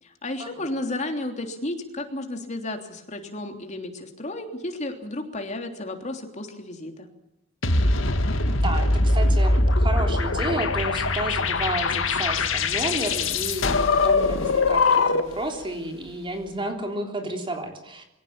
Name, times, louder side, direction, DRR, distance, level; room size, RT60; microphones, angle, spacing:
voice 1, 0.0-7.1, left 2 dB, 35° left, 4 dB, 3.3 m, -33 dB
sound 1, 7.6-15.4, left 3 dB, 85° left, 2.1 m, -22 dB
voice 2, 8.5-18.0, right 1 dB, 25° right, 3 dB, 3.4 m, -31 dB
23.5 x 17.5 x 8.8 m, 0.80 s
head